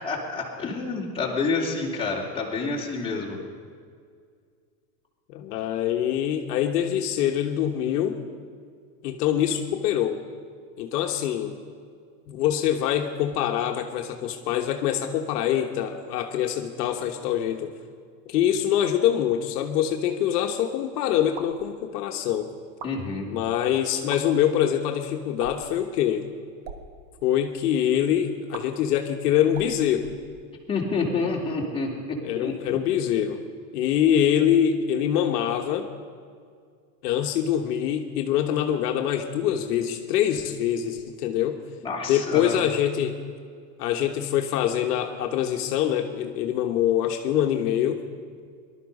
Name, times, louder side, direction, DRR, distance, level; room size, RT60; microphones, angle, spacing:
voice 1, 0.0-3.4 22.8-23.3 30.7-32.8 41.8-42.5, left 4 dB, 10° left, -4 dB, 2.9 m, -28 dB
voice 2, 5.3-8.2 9.0-10.2 10.8-11.6 12.3-17.7 18.3-22.5 23.3-26.3 27.2-30.1 32.2-33.4 33.7-35.9 37.0-41.6 42.1-43.2 43.8-48.0, left 10 dB, 70° left, 4 dB, 1.3 m, -24 dB
sound 1, 21.3-21.6 22.6-22.9 24.0-24.2 25.4-25.7 26.5-26.8 28.5-28.6 29.5-30.7, right 6 dB, 60° right, 1.7 m, -41 dB
18.5 x 12.0 x 5.4 m, 2.1 s
supercardioid pair, 140°, 48 cm